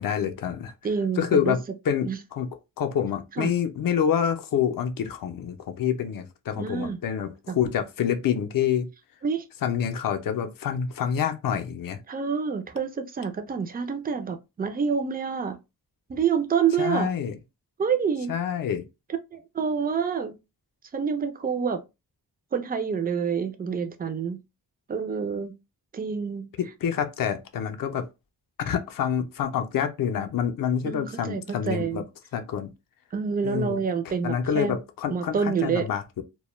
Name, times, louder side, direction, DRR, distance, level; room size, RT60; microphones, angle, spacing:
voice 1, 0.0-0.7 1.2-1.6 1.9-2.5 2.8-8.9 9.6-12.0 16.8-17.4 18.3-18.8 26.8-28.1 28.6-32.0 32.3-32.7 33.4-33.8 34.2-36.2, left 8 dB, 55° left, 0.5 m, -27 dB
voice 2, 0.8-1.6 2.1-2.2 3.4-3.5 6.6-7.0 7.5-7.6 9.2-9.4 12.1-15.6 16.1-17.1 17.8-18.3 19.3-20.4 20.9-21.8 22.5-24.4 24.9-25.6 25.9-26.5 30.8-32.0 33.1-34.8 35.1-35.9, right 6 dB, 25° right, 0.3 m, -27 dB
2.2 x 2.1 x 3.0 m
wide cardioid pair, 90°, 41 cm